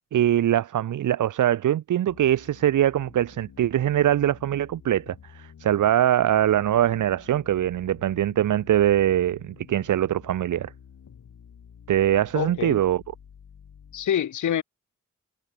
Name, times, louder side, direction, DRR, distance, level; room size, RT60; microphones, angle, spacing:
voice 1, 0.1-10.7 11.9-13.0, right 11 dB, 75° right, 0.5 m, -22 dB
sound 1, 2.1-14.1, left 7 dB, 90° left, 4.9 m, -50 dB
voice 2, 12.3-12.8 13.9-14.6, left 10 dB, 70° left, 0.7 m, -26 dB
cardioid pair, 75°, 31 cm